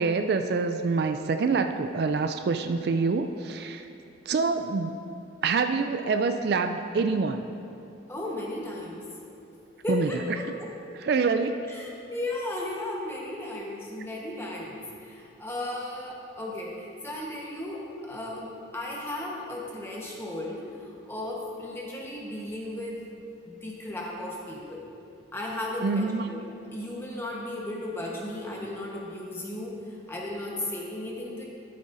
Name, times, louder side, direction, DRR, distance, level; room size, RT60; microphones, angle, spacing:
voice 1, 0.0-3.9 4.3-5.1 5.4-7.4 9.9-10.1 11.0-11.6 25.8-26.3, right 4 dB, 55° right, 7 dB, 0.3 m, -26 dB
voice 2, 8.1-9.0 9.8-10.8 11.7-23.0 23.4-24.9 25.3-31.4, left 1 dB, 10° left, -3 dB, 1.1 m, -35 dB
13.5 x 8.5 x 2.6 m, 2.7 s
head